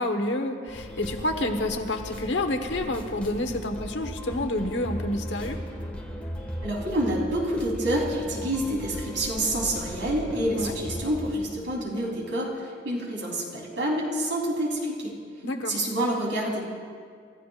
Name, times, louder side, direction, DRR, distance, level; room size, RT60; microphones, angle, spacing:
voice 1, 0.0-5.6 10.5-10.7 15.4-15.8, left 1 dB, 75° left, 5 dB, 1.3 m, -29 dB
sound 1, 0.7-11.4, equal, 5° left, 1.9 m, -37 dB
voice 2, 6.6-15.2 15.7-16.6, right 1 dB, 80° right, -2 dB, 3.8 m, -28 dB
29.5 x 14.5 x 2.5 m, 2.1 s
head